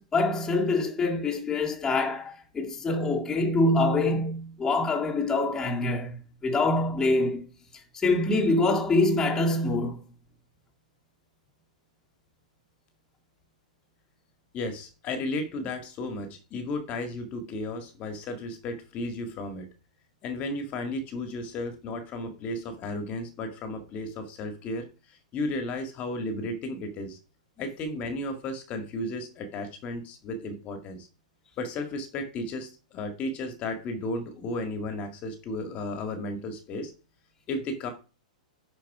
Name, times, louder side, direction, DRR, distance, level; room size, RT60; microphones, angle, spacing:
voice 1, 0.0-7.4 7.9-10.0, left 2 dB, 15° left, 1.9 m, -25 dB
voice 2, 14.5-19.7 20.2-27.2 27.6-31.1 31.6-36.9 37.5-37.9, left 2 dB, 35° left, 1.8 m, -34 dB
10.5 x 4.6 x 4.7 m
hypercardioid pair, 110°, 4 cm